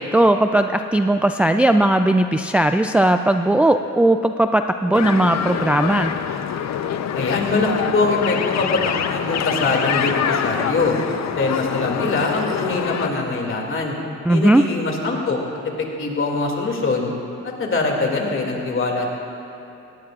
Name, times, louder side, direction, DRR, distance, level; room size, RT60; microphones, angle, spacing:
voice 1, 0.0-6.1 14.3-14.6, right 1 dB, 5° right, 7 dB, 0.3 m, -17 dB
sound 1, 4.9-13.1, left 8 dB, 65° left, 0.7 m, -25 dB
voice 2, 7.1-11.0 11.3-14.0 14.3-15.4 15.8-17.1 17.4-19.1, left 3 dB, 45° left, 0 dB, 2.5 m, -23 dB
18.5 x 17.0 x 2.5 m, 2.8 s
cardioid pair, 90°, 30 cm